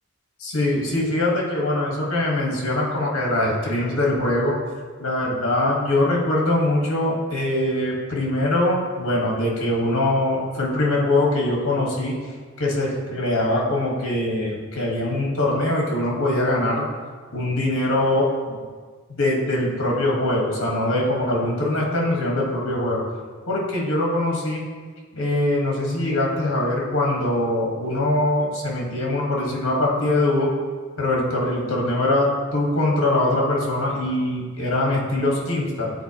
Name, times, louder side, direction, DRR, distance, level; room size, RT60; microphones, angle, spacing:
voice 1, 0.4-4.6 5.0-12.2 12.6-16.9 17.3-18.6 19.1-23.0 23.5-24.6 25.1-30.5 31.0-35.9, left 1 dB, 70° left, -2 dB, 1.4 m, -22 dB
9.3 x 4.0 x 2.9 m, 1.5 s
head